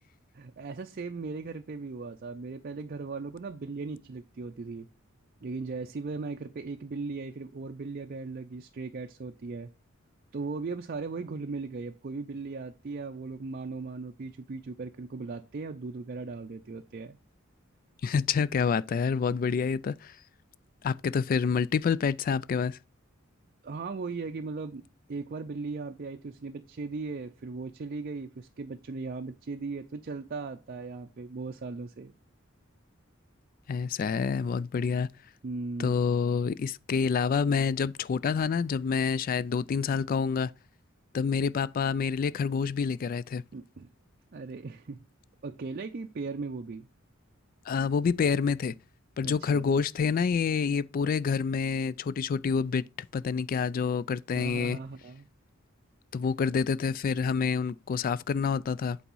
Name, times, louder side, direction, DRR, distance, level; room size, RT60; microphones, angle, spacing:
voice 1, 0.3-4.9 5.4-9.7 10.3-17.2 23.6-24.8 25.1-32.1 35.4-36.0 43.5-43.9 44.3-45.1 45.4-46.9 49.2-49.6 54.3-55.3, right 4 dB, 45° right, 0.5 m, -38 dB
voice 2, 18.0-20.1 20.8-22.8 33.7-35.1 35.8-40.5 41.1-43.4 47.7-48.7 49.2-54.8 56.1-59.0, left 5 dB, 45° left, 0.3 m, -27 dB
8.5 x 4.0 x 5.4 m
head